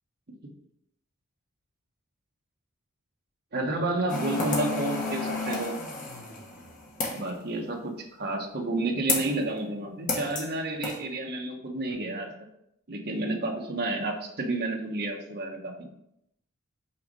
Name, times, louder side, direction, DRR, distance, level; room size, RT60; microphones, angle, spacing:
voice 1, 3.5-5.8 7.1-12.4 12.9-15.9, right 2 dB, 45° right, 1 dB, 1.2 m, -30 dB
sound 1, 4.1-7.3 9.1-9.4 10.1-10.5 10.8-11.0, left 3 dB, 35° left, 1.3 m, -31 dB
5.7 x 4.1 x 5.2 m, 0.78 s
head